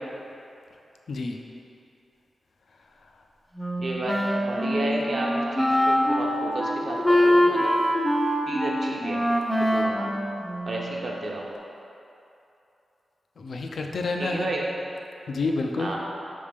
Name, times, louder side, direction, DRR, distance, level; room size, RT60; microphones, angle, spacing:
voice 1, 1.1-1.4 13.4-14.5 15.3-15.9, left 3 dB, 60° left, 2 dB, 0.5 m, -28 dB
Wind instrument woodwind instrument, 3.6-11.0, equal, 5° left, 0.5 m, -24 dB
voice 2, 3.8-7.7 8.5-9.2 9.5-10.1 10.7-11.5 14.2-14.6 15.8-16.0, right 1 dB, 50° right, -2 dB, 0.8 m, -31 dB
5.3 x 3.5 x 5.1 m, 2.8 s
wide cardioid pair, 130°, 0 cm